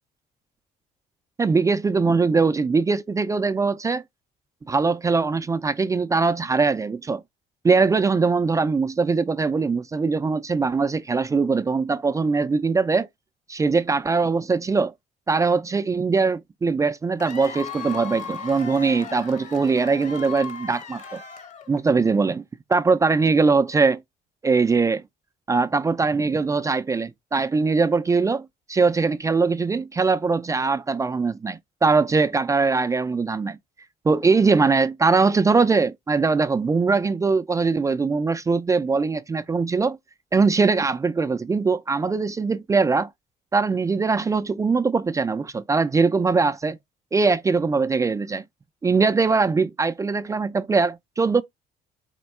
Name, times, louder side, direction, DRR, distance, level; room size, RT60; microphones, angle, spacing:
voice 1, 1.4-4.0 4.7-7.2 7.6-13.1 13.5-14.9 15.3-21.2 21.7-22.4 22.7-24.0 24.4-25.0 25.5-33.6 34.0-40.0 40.3-43.1 43.5-46.8 47.1-48.4 48.8-51.4, right 4 dB, 20° right, 0.3 m, -21 dB
Cheering / Applause / Crowd, 17.2-21.9, left 6 dB, 45° left, 0.9 m, -37 dB
4.3 x 2.3 x 4.1 m
cardioid pair, 110°, 17 cm